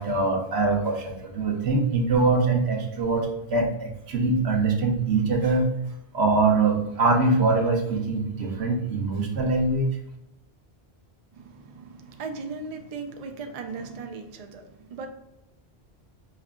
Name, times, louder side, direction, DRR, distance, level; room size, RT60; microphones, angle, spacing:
voice 1, 0.0-5.7 6.1-9.9, right 3 dB, 90° right, 2 dB, 1.1 m, -23 dB
voice 2, 11.3-15.1, right 4 dB, 50° right, 5 dB, 0.5 m, -37 dB
5.4 x 2.3 x 3.6 m, 0.87 s
omnidirectional pair, 1.1 m